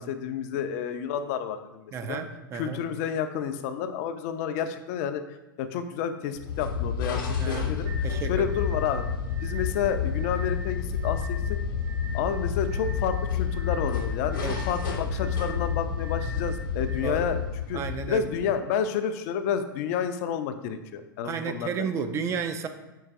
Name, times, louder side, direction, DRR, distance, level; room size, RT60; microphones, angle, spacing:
voice 1, 0.0-2.2 2.5-5.2 5.6-9.0 9.4-11.4 12.1-14.4 14.7-17.4 17.7-17.8 18.1-21.9, left 8 dB, 45° left, 9 dB, 0.4 m, -30 dB
voice 2, 1.9-2.8 7.4-7.7 8.0-8.5 14.4-14.6 17.0-17.2 17.7-18.3 21.2-22.7, right 6 dB, 25° right, 8 dB, 0.3 m, -32 dB
sound 1, 6.4-18.6, left 6 dB, 60° left, 0.9 m, -30 dB
sound 2, 7.8-17.0, equal, 45° right, 0.9 m, -44 dB
4.6 x 4.4 x 2.5 m, 1.0 s
figure-of-eight pair, 100°, 12 cm